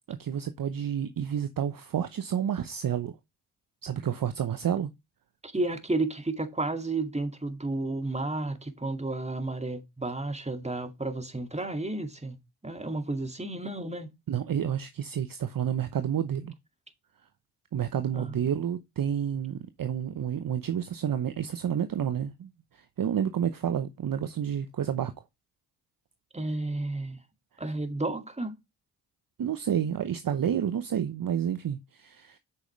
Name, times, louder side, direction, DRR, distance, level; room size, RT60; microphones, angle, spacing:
voice 1, 0.1-3.2 3.8-4.9 14.3-16.5 17.7-25.1 29.4-32.4, right 9 dB, 45° right, 0.9 m, -30 dB
voice 2, 5.4-12.4 12.6-14.1 18.1-18.4 26.3-27.2 27.6-28.5, right 2 dB, 15° right, 2.2 m, -32 dB
8.7 x 6.2 x 3.2 m
hypercardioid pair, 45°, 50 cm